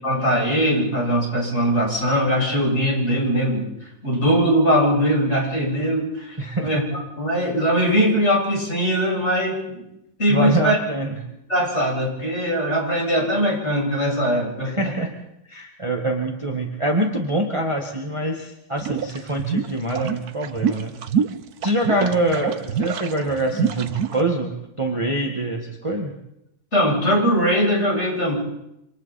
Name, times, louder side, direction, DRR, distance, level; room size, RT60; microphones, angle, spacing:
voice 1, 0.0-3.7 4.0-9.8 10.2-10.8 11.5-14.9 21.9-22.1 26.7-28.3, equal, 35° left, -2 dB, 8.4 m, -21 dB
voice 2, 6.4-6.7 10.3-11.2 14.7-15.1 15.5-20.9 21.6-26.1, right 1 dB, 15° right, 1 dB, 1.9 m, -24 dB
sound 1, 18.8-24.2, right 7 dB, 60° right, 1.4 m, -25 dB
28.0 x 26.5 x 4.3 m, 0.84 s
omnidirectional pair, 2.0 m